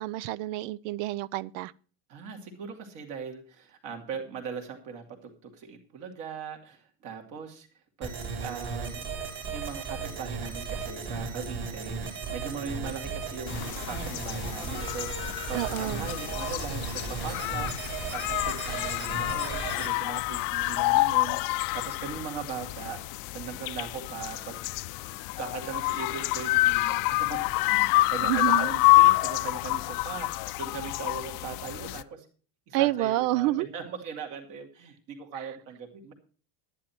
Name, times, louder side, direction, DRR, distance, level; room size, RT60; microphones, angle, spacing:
voice 1, 0.0-1.7 15.5-16.1 28.2-28.7 32.7-33.7, right 16 dB, 85° right, 0.6 m, -28 dB
voice 2, 2.1-7.7 8.0-9.1 9.5-24.8 25.4-32.3 32.7-36.1, right 6 dB, 50° right, 2.7 m, -40 dB
sound 1, 8.0-19.9, right 5 dB, 30° right, 3.0 m, -36 dB
sound 2, 13.5-32.0, left 19 dB, 55° left, 0.5 m, -27 dB
11.0 x 11.0 x 4.4 m
cardioid pair, 180°, 38 cm